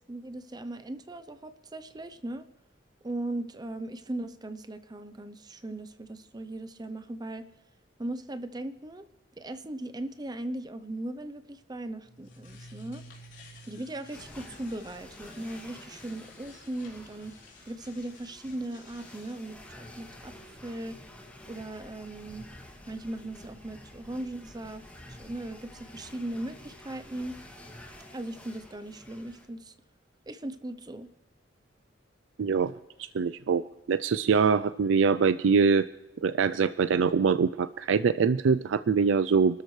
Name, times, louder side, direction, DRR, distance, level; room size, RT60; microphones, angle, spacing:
voice 1, 0.1-2.5 3.0-7.5 8.0-9.0 9.4-13.0 13.7-20.3 20.6-21.0 21.5-22.5 22.9-27.4 28.1-29.7 30.3-31.1, right 1 dB, 20° right, 10 dB, 0.6 m, -38 dB
sound 1, 12.0-19.5, left 1 dB, 75° left, 3.6 m, -52 dB
sound 2, 14.1-29.5, left 1 dB, 10° left, 2.2 m, -50 dB
voice 2, 32.4-32.7 33.0-33.6 33.9-35.9 36.2-39.6, right 5 dB, 85° right, 14 dB, 0.4 m, -24 dB
28.0 x 13.0 x 3.2 m, 0.98 s
head